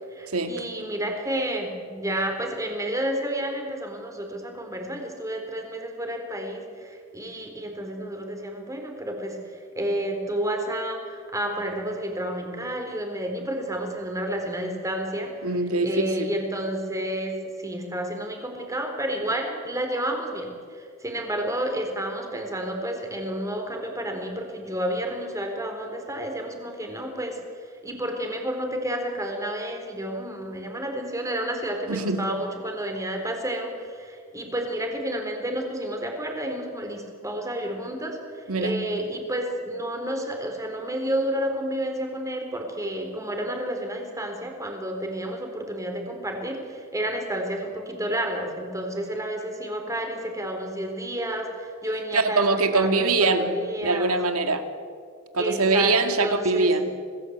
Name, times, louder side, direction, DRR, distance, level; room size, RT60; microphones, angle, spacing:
voice 1, 0.1-15.3 15.8-27.4 27.8-54.2 55.4-56.7, right 1 dB, 15° right, 3 dB, 4.1 m, -30 dB
voice 2, 15.4-15.9 16.2-16.3 31.9-32.2 38.5-38.8 52.1-53.5 53.8-54.6 55.3-56.9, right 3 dB, 75° right, 7 dB, 2.2 m, -23 dB
26.5 x 19.0 x 8.2 m, 2.2 s
head